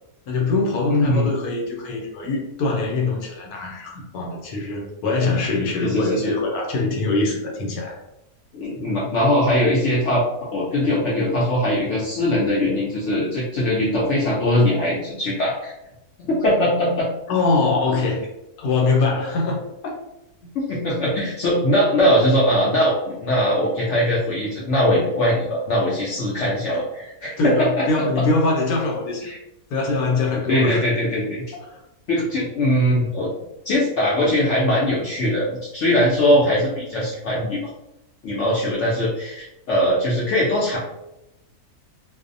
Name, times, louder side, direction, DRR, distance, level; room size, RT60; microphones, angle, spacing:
voice 1, 0.3-8.0 17.3-18.3 18.6-20.0 27.4-29.3 29.7-30.8 31.7-31.8, left 3 dB, 85° left, -1 dB, 1.1 m, -23 dB
voice 2, 0.9-1.3 5.8-6.3 8.5-15.7 16.2-17.1 20.5-27.9 28.2-28.3 29.2-29.4 30.5-31.6 32.1-33.3 33.6-37.6 38.2-40.8, left 1 dB, 65° left, -6 dB, 0.7 m, -21 dB
2.5 x 2.0 x 2.5 m, 0.88 s
omnidirectional pair, 1.6 m